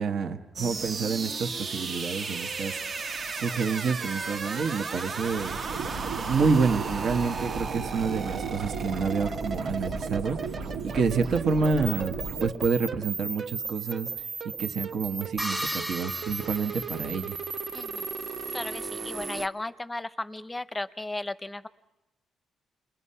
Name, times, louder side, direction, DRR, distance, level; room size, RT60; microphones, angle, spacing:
voice 1, 0.0-2.7 3.3-5.6 6.3-14.1 14.4-17.4, right 5 dB, 65° right, 6 dB, 1.3 m, -28 dB
sound 1, 0.6-19.5, right 5 dB, 45° right, 0.9 m, -35 dB
sound 2, 5.2-12.5, right 4 dB, 85° right, 1.6 m, -35 dB
sound 3, 15.4-17.6, right 1 dB, 10° right, 1.3 m, -36 dB
voice 2, 17.7-18.0 18.5-21.7, left 2 dB, 15° left, 14 dB, 0.7 m, -35 dB
28.5 x 21.0 x 5.6 m, 1.0 s
cardioid pair, 90°, 0 cm